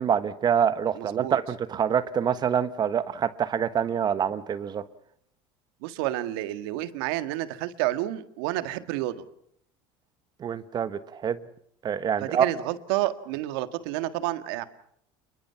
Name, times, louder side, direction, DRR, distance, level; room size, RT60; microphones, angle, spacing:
voice 1, 0.0-4.8 10.4-11.4 11.8-12.4, right 8 dB, 35° right, 13 dB, 1.3 m, -26 dB
voice 2, 0.9-1.4 5.8-9.3 12.2-14.6, right 15 dB, 80° right, 11 dB, 1.8 m, -30 dB
29.5 x 22.0 x 5.8 m, 0.68 s
supercardioid pair, 120°, 12 cm